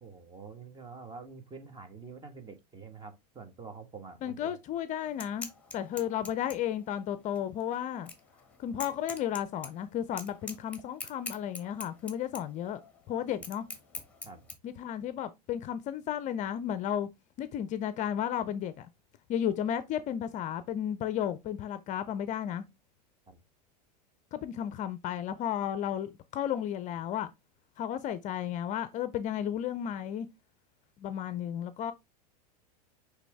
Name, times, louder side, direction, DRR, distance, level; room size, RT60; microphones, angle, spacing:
voice 1, 0.0-4.5 14.2-14.4 23.3-23.4, right 4 dB, 20° right, 1.5 m, -47 dB
voice 2, 4.2-5.5 5.7-8.1 8.6-12.8 13.1-13.6 14.6-17.1 17.4-18.9 19.3-22.6 24.3-27.3 27.8-30.3 31.0-31.9, left 10 dB, 35° left, 0.5 m, -33 dB
sound 1, 5.0-14.5, left 4 dB, 5° left, 1.7 m, -45 dB
8.2 x 3.4 x 3.5 m
hypercardioid pair, 100°, 21 cm